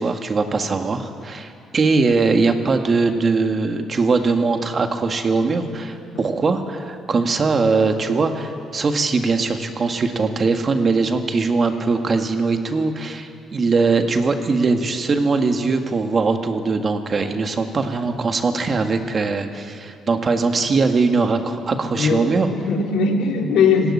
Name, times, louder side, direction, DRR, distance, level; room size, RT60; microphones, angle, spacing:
voice 1, 0.0-22.5, right 4 dB, 40° right, 6 dB, 1.8 m, -21 dB
voice 2, 21.8-23.9, left 5 dB, 85° left, 2 dB, 2.7 m, -20 dB
18.5 x 16.0 x 9.9 m, 2.5 s
cardioid pair, 90°, 0 cm